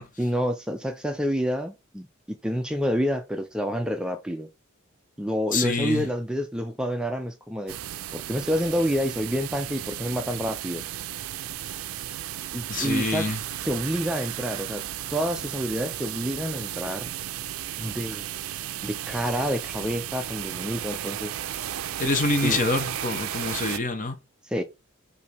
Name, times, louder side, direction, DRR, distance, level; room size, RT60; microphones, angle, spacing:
voice 1, 0.2-4.5 5.2-7.8 8.1-10.9 11.7-11.8 12.5-13.3 13.6-14.8 15.1-17.1 17.8-18.3 18.8-21.4 22.4-22.6 24.4-24.6, equal, 5° right, 0.3 m, -28 dB
voice 2, 5.5-6.1 12.7-13.4 22.0-24.2, left 3 dB, 40° left, 0.8 m, -26 dB
sound 1, 7.7-23.8, right 11 dB, 75° right, 0.4 m, -34 dB
5.2 x 2.6 x 3.3 m
head